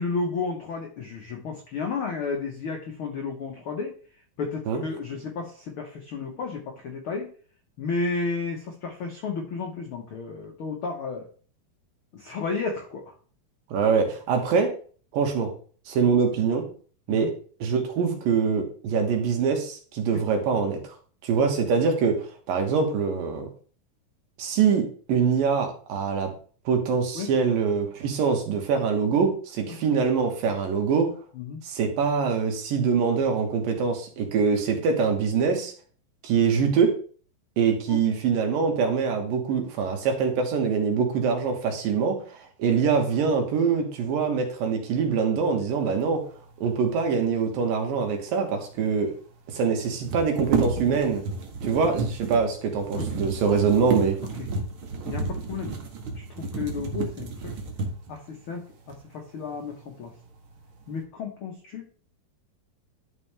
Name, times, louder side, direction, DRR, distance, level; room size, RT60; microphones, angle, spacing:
voice 1, 0.0-3.9 4.4-7.3 7.8-11.3 12.1-13.1 17.1-17.3 20.1-20.2 23.4-23.5 27.1-27.3 29.7-29.8 31.3-31.6 37.9-38.0 52.9-53.0 54.4-54.5 55.0-55.7 56.1-57.5 58.1-60.1 60.9-61.8, left 4 dB, 80° left, 2 dB, 1.2 m, -32 dB
voice 2, 13.7-14.7 15.1-15.5 15.9-16.6 17.1-17.3 17.6-20.8 21.2-23.5 24.4-24.8 25.1-26.3 26.7-31.1 31.6-35.7 36.2-36.9 37.6-46.2 46.6-49.1 49.5-51.2 51.6-54.2, right 5 dB, 80° right, 3 dB, 3.2 m, -24 dB
sound 1, 48.4-48.5 48.7-48.8 49.8-58.2 58.9-59.0 59.5-60.1 60.4-61.0, right 5 dB, 60° right, 1.4 m, -31 dB
11.5 x 5.6 x 3.3 m, 0.42 s
omnidirectional pair, 4.0 m